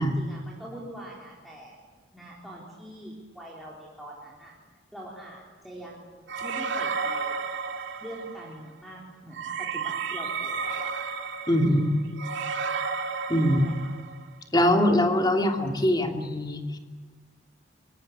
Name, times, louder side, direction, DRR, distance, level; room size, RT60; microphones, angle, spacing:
voice 1, 0.0-1.8 2.1-4.5 4.9-7.4 8.0-10.9 11.6-12.0 13.5-14.0, right 1 dB, ahead, -5 dB, 3.8 m, -43 dB
sound 1, 6.3-8.5 9.3-14.2, right 5 dB, 60° right, 2.4 m, -32 dB
voice 2, 11.5-11.9 13.3-13.7 14.5-16.6, equal, 20° left, 3 dB, 2.7 m, -22 dB
23.5 x 23.0 x 8.6 m, 1.5 s
head